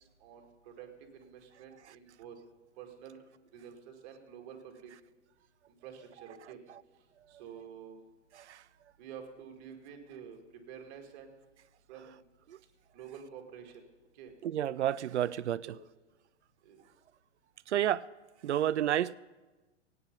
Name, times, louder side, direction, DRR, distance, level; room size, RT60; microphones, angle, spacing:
voice 1, 0.2-2.4 2.8-3.2 3.5-4.9 5.7-6.6 7.3-8.0 9.0-11.3 11.9-12.2 12.9-13.8 14.1-14.3 15.6-15.8 16.6-16.9, right 8 dB, 40° right, 3 dB, 2.2 m, -49 dB
voice 2, 14.4-15.8 17.7-18.0 18.4-19.2, right 11 dB, 70° right, 20 dB, 0.5 m, -30 dB
17.5 x 9.4 x 5.4 m, 1.2 s
figure-of-eight pair, 110°, 36 cm